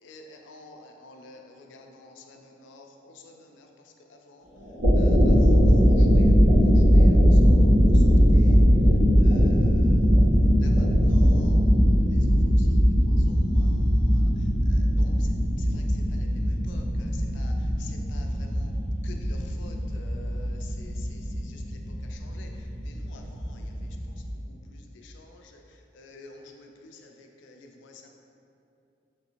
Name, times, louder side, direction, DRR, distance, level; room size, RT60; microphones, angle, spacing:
voice 1, 0.0-3.7 4.1-4.5 4.9-6.3 6.6-7.6 7.9-8.0 8.3-8.6 9.2-10.1 10.6-11.7 12.1-14.3 14.7-15.3 15.6-17.5 17.8-18.7 19.0-21.6 22.1-22.5 22.8-23.7 24.3-25.6 25.9-28.1, left 3 dB, 70° left, 3 dB, 0.3 m, -50 dB
sound 1, 4.6-24.3, equal, 50° right, 0.9 m, -20 dB
3.3 x 2.5 x 2.9 m, 2.6 s
head